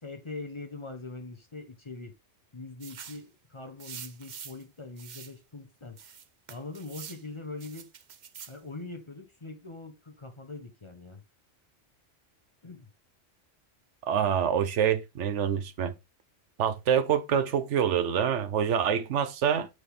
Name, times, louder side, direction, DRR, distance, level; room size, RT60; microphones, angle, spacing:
voice 1, 0.0-2.2 2.5-6.0 6.5-7.9 8.5-11.2 12.6-12.9, left 3 dB, 25° left, 0.9 m, -42 dB
sound 1, 2.8-3.3 3.8-4.6 5.0-5.3 6.0-7.2 7.6-8.6, right 8 dB, 50° right, 0.6 m, -45 dB
voice 2, 14.0-15.9 16.6-19.7, right 8 dB, 75° right, 1.0 m, -26 dB
6.2 x 4.9 x 3.7 m
omnidirectional pair, 1.2 m